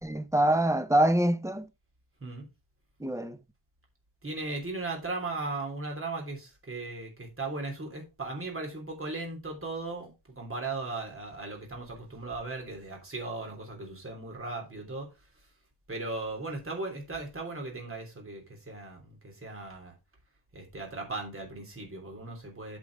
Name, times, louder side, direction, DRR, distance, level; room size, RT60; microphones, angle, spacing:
voice 1, 0.0-1.7 3.0-3.4, right 1 dB, 5° right, 0.7 m, -25 dB
voice 2, 4.2-15.1 15.9-19.9 20.5-22.8, right 3 dB, 30° right, 3.3 m, -37 dB
8.9 x 5.2 x 4.7 m
wide cardioid pair, 145°, 46 cm